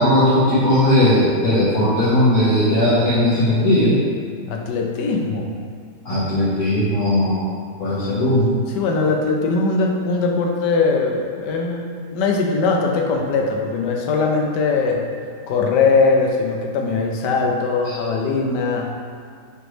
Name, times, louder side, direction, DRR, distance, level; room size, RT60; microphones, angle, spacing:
voice 1, 0.0-4.0 6.0-7.4 7.8-8.6 17.8-17.9, left 1 dB, 70° left, -14 dB, 1.6 m, -17 dB
voice 2, 4.5-5.5 8.7-15.0 15.5-18.9, left 4 dB, 90° left, 1 dB, 1.2 m, -20 dB
5.1 x 3.0 x 3.1 m, 2.2 s
omnidirectional pair, 1.8 m